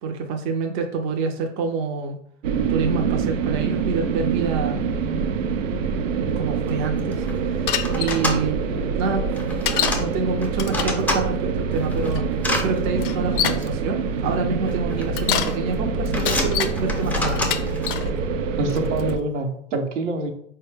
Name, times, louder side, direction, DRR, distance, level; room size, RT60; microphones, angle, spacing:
voice 1, 0.0-2.2 2.7-4.8 6.4-8.6 9.0-9.2 10.0-12.2 12.6-17.5, right 4 dB, 35° right, 3 dB, 0.6 m, -27 dB
sound 1, 2.4-19.2, right 5 dB, 90° right, 0.5 m, -25 dB
sound 2, 6.7-6.8 7.0-7.3 7.8-8.4 9.3-10.0 10.4-11.2 11.7-12.7 13.6-13.7 14.7-15.1 15.4-15.7 16.1-17.9, left 2 dB, 5° left, 0.6 m, -27 dB
Bicycle, 7.7-8.2 9.6-10.0 10.5-11.0 12.1-12.2 13.0-13.7 15.0-15.6 16.1-16.7 17.4-18.1 18.7-19.1, left 9 dB, 45° left, 0.5 m, -26 dB
voice 2, 18.6-20.3, right 2 dB, 70° right, 4 dB, 0.8 m, -25 dB
4.2 x 2.2 x 3.3 m, 0.65 s
hypercardioid pair, 100°, 37 cm